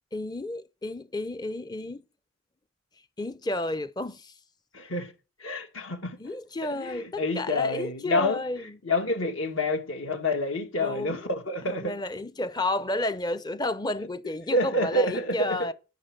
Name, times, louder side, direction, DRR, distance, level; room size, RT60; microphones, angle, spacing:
voice 1, 0.1-2.0 3.2-4.3 6.2-8.8 10.8-11.4 11.6-15.7, left 2 dB, 20° left, 0.6 m, -32 dB
voice 2, 4.7-5.1 5.4-6.2 6.7-8.4 8.8-11.9 14.5-15.7, left 1 dB, 60° left, 2.3 m, -28 dB
13.5 x 5.8 x 6.6 m
head